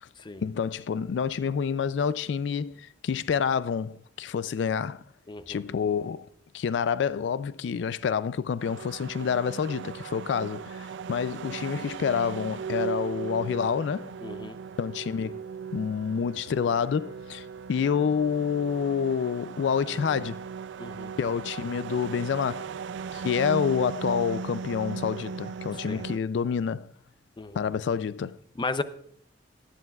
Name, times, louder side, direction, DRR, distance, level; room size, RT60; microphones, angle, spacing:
voice 1, 0.4-5.0 5.5-6.3 6.5-14.1 14.8-15.4 15.7-20.4 21.2-22.7 23.1-26.9 27.5-28.4, left 6 dB, 80° left, 0.3 m, -28 dB
voice 2, 5.3-5.6 14.2-14.6 20.8-21.1 25.9-26.0 27.4-27.6 28.6-28.8, left 3 dB, 25° left, 0.5 m, -34 dB
sound 1, 8.6-26.2, right 6 dB, 80° right, 0.3 m, -38 dB
18.5 x 11.5 x 2.3 m
head